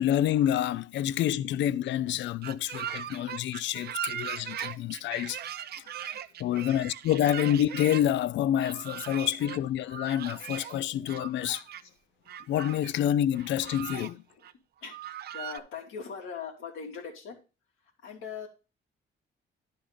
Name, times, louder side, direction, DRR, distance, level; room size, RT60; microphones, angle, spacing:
voice 1, 0.0-5.4 6.4-11.6 12.5-14.2, left 11 dB, 70° left, 0.4 m, -28 dB
sound 1, 2.4-8.0 8.6-9.6 9.9-10.8 11.1-11.8 12.3-12.9 13.3-14.1 14.4-14.5 14.8-15.6, right 10 dB, 55° right, 0.5 m, -39 dB
voice 2, 14.8-17.4 18.0-18.5, left 6 dB, 85° left, 2.0 m, -40 dB
10.0 x 4.0 x 4.9 m
cardioid pair, 90°, 20 cm